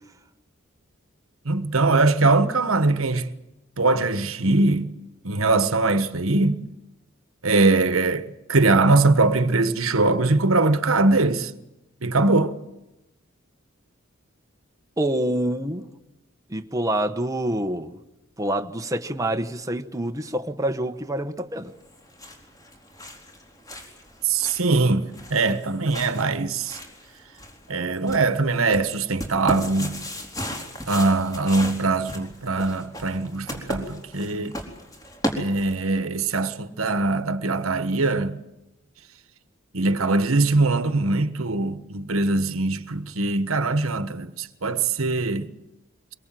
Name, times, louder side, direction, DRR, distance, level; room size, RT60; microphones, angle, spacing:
voice 1, 1.4-3.3 3.8-4.9 5.2-6.6 7.4-11.5 12.0-12.5 24.2-26.8 27.7-30.0 30.9-34.6 35.3-38.4 39.7-45.5, right 3 dB, 90° right, 1.4 m, -22 dB
voice 2, 15.0-15.9 16.5-18.0 18.4-21.7, right 1 dB, 15° right, 1.1 m, -26 dB
sound 1, 21.8-36.0, equal, 15° left, 4.1 m, -36 dB
24.0 x 22.5 x 7.7 m
head